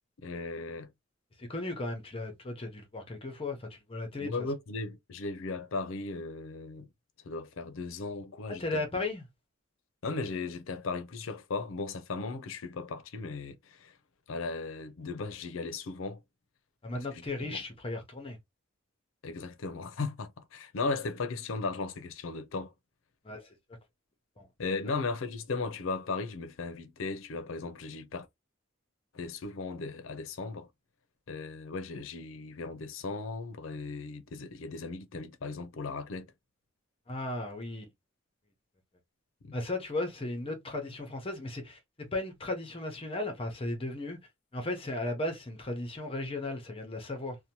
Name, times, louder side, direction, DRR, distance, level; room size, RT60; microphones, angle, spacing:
voice 1, 0.2-0.9 4.2-6.9 7.2-8.8 10.0-14.0 14.3-16.2 16.9-17.1 17.4-17.5 19.2-22.7 24.6-28.3 29.1-30.7 31.3-36.3 39.4-39.6, left 3 dB, 75° left, 0.5 m, -36 dB
voice 2, 1.4-4.4 8.6-9.2 16.8-18.4 23.2-23.5 24.4-24.5 37.1-37.9 39.5-44.2 44.5-47.4, left 2 dB, 25° left, 0.6 m, -36 dB
2.7 x 2.1 x 2.8 m
head